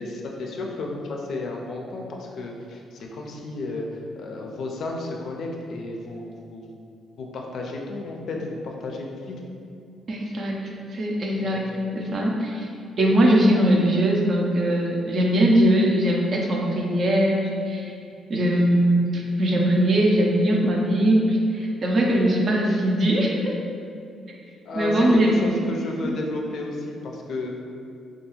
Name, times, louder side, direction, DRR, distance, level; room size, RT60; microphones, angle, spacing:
voice 1, 0.0-3.8 4.2-6.7 7.2-9.4 11.5-11.7 18.5-18.6 22.0-22.2 24.7-27.6, left 2 dB, 65° left, 0 dB, 0.3 m, -32 dB
voice 2, 10.1-11.7 11.9-12.7 13.0-17.9 18.3-23.6 24.7-25.4 26.0-26.2, right 1 dB, 50° right, -1 dB, 0.4 m, -21 dB
2.3 x 2.3 x 3.0 m, 2.5 s
cardioid pair, 90°, 0 cm